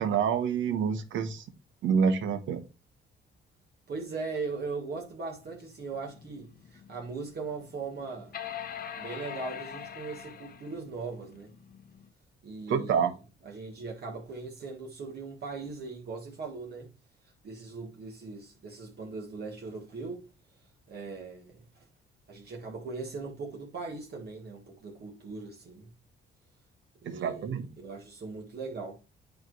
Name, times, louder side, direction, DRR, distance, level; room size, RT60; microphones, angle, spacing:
voice 1, 0.0-1.4 1.8-2.6 12.7-13.1 27.1-27.7, right 6 dB, 75° right, 1.1 m, -27 dB
voice 2, 3.9-8.4 9.0-11.5 12.4-13.1 13.4-16.9 17.4-20.3 20.9-21.9 22.3-25.9 27.0-27.5 27.8-29.0, right 4 dB, 55° right, 1.5 m, -39 dB
sound 1, 5.6-12.1, left 8 dB, 50° left, 0.9 m, -43 dB
8.7 x 3.2 x 4.6 m
cardioid pair, 90°, 20 cm